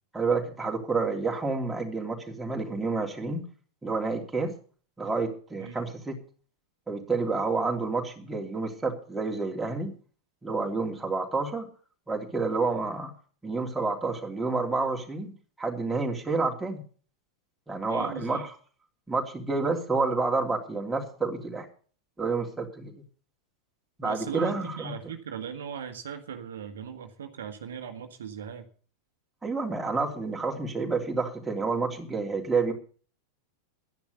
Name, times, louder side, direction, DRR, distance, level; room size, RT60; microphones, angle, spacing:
voice 1, 0.1-3.5 3.8-4.5 5.0-6.2 6.9-10.0 10.4-11.7 12.1-13.1 13.4-15.3 15.6-16.8 17.7-18.5 19.1-21.7 22.2-22.9 24.0-24.9 29.4-32.7, right 3 dB, 10° right, 0 dB, 3.2 m, -29 dB
voice 2, 17.9-18.5 24.0-28.7, right 7 dB, 60° right, 5 dB, 1.6 m, -38 dB
12.5 x 10.5 x 6.8 m, 0.41 s
figure-of-eight pair, 90°, 0 cm